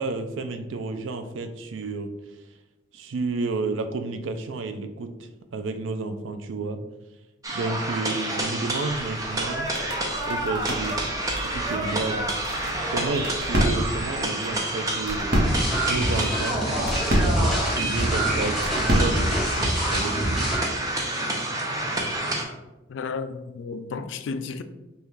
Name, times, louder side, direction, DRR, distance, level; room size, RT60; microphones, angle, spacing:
voice 1, 0.0-2.1 2.9-6.8 7.5-9.7 10.3-11.0 11.4-12.3 12.9-15.5 15.9-16.6 17.3-20.4, right 3 dB, 80° right, 0.4 m, -31 dB
sound 1, 7.4-22.4, right 1 dB, 20° right, 0.5 m, -29 dB
sound 2, 8.9-19.8, equal, 50° right, 0.9 m, -29 dB
sound 3, 15.4-20.6, right 1 dB, ahead, 0.9 m, -26 dB
voice 2, 22.9-24.6, left 4 dB, 75° left, 0.3 m, -32 dB
5.4 x 2.4 x 3.1 m
head